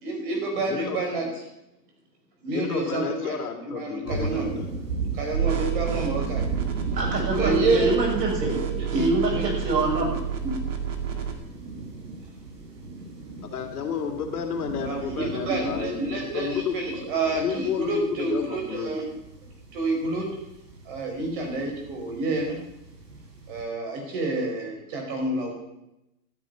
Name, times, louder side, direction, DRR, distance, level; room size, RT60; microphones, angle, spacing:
voice 1, 0.0-1.2 2.4-3.4 3.6-4.5 5.1-6.4 7.4-8.1 8.4-9.0 9.3-9.5 14.8-19.0 19.7-20.3 20.8-22.6 23.5-25.5, right 3 dB, 30° right, 1 dB, 4.9 m, -28 dB
voice 2, 0.6-1.0 2.5-4.7 13.4-17.0 17.4-18.9, left 7 dB, 65° left, 4 dB, 3.3 m, -31 dB
sound 1, 4.0-23.6, right 3 dB, 70° right, 6.4 m, -37 dB
sound 2, 5.3-11.3, right 8 dB, 50° right, 2.5 m, -29 dB
voice 3, 7.0-8.5 8.9-10.1, right 2 dB, 90° right, 0 dB, 7.3 m, -25 dB
13.0 x 9.6 x 9.4 m, 0.89 s
hypercardioid pair, 175°, 49 cm